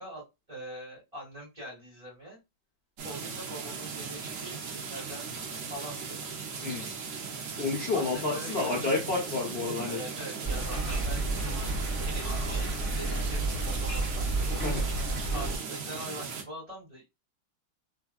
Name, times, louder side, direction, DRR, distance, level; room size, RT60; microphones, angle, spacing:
voice 1, 0.0-2.4 3.0-5.3 5.6-6.2 7.9-8.8 9.8-11.3 11.9-14.3 15.3-17.0, right 1 dB, 15° right, 2.3 m, -43 dB
sound 1, 3.0-16.4, right 5 dB, 85° right, 0.7 m, -38 dB
voice 2, 6.6-6.9 7.6-10.0 14.6-14.8, left 3 dB, 70° left, 0.5 m, -30 dB
sound 2, 10.4-15.6, right 2 dB, 5° left, 1.6 m, -31 dB
3.6 x 3.3 x 2.2 m
omnidirectional pair, 2.3 m